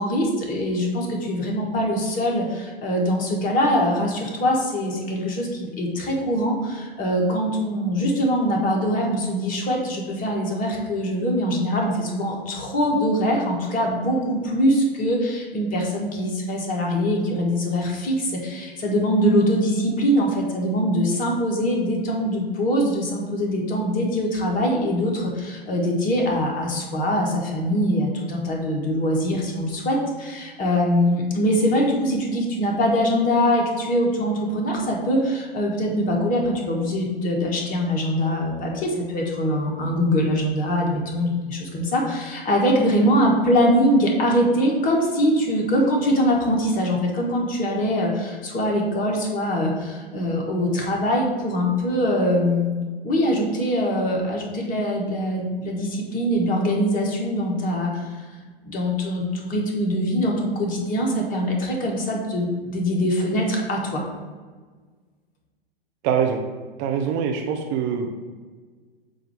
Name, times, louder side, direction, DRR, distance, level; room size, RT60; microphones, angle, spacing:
voice 1, 0.0-52.7 53.0-58.2 58.6-64.0, equal, 25° left, 0 dB, 1.3 m, -23 dB
voice 2, 66.0-66.4 66.8-68.1, right 7 dB, 35° right, 3 dB, 0.6 m, -23 dB
7.5 x 2.6 x 4.8 m, 1.5 s
figure-of-eight pair, 100°, 30 cm